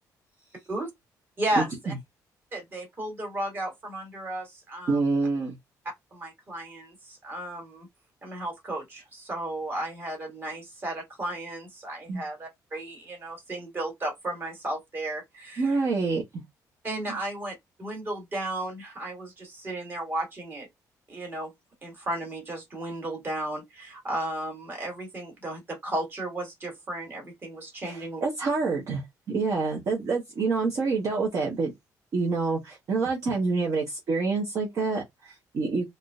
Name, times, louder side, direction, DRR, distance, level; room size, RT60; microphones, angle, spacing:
voice 1, 1.4-1.9 2.5-5.0 6.1-7.9 8.2-15.8 16.8-20.7 21.1-21.5 21.8-28.2, right 1 dB, 30° right, 1.8 m, -34 dB
voice 2, 4.9-5.5 12.1-12.2 15.6-16.4 27.9-31.7 32.1-35.9, right 4 dB, 50° right, 1.1 m, -27 dB
3.6 x 2.7 x 2.4 m
cardioid pair, 135°, 7 cm